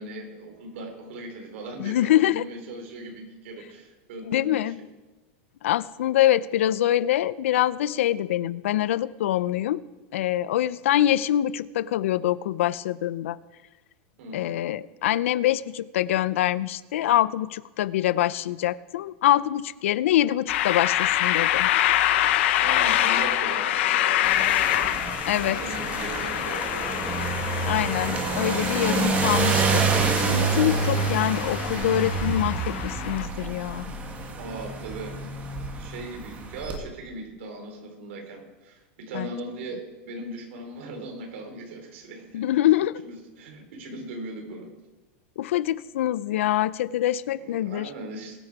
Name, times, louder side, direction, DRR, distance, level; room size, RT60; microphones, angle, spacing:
voice 1, 0.0-4.7 14.2-14.5 22.6-24.9 25.5-27.0 34.4-35.2 35.8-42.5 43.0-44.7 47.2-48.4, right 2 dB, 75° right, 3 dB, 3.9 m, -38 dB
voice 2, 1.8-2.4 4.3-4.8 5.6-9.8 10.1-13.4 14.3-21.7 25.3-25.6 27.6-33.9 39.1-39.3 42.3-43.0 45.4-47.9, left 13 dB, 90° left, 18 dB, 0.5 m, -24 dB
sound 1, 20.5-33.3, left 13 dB, 70° left, 1.0 m, -26 dB
sound 2, 24.2-36.8, right 4 dB, 20° right, 1.9 m, -28 dB
21.0 x 8.8 x 4.7 m, 1.1 s
supercardioid pair, 155°, 7 cm